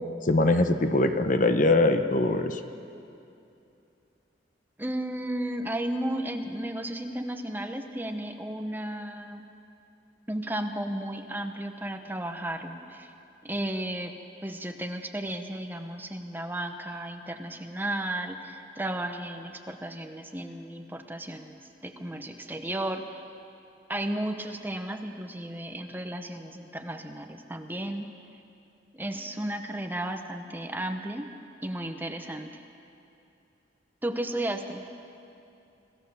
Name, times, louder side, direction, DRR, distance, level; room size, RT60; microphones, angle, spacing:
voice 1, 0.2-2.6, left 2 dB, 45° left, 8 dB, 0.9 m, -22 dB
voice 2, 4.8-9.4 10.3-13.1 13.4-14.2 14.4-23.2 23.9-28.1 28.9-31.3 31.6-32.6 34.0-34.9, right 1 dB, 10° right, 6 dB, 0.9 m, -34 dB
26.5 x 15.5 x 7.0 m, 2.7 s
head